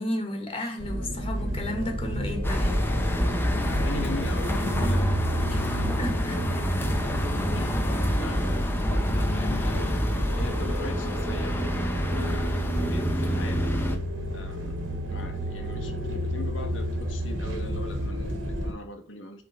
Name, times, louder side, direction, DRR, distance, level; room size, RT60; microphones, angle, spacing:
voice 1, 0.0-2.8 5.5-6.6, left 1 dB, 30° left, 1.6 m, -33 dB
sound 1, 0.8-18.7, equal, 85° right, 1.8 m, -30 dB
sound 2, 2.4-14.0, left 1 dB, 10° left, 0.9 m, -28 dB
voice 2, 3.7-5.8 7.5-10.0 10.3-13.8 14.3-14.8 15.1-19.4, left 2 dB, 80° left, 1.1 m, -41 dB
7.0 x 3.6 x 5.9 m
head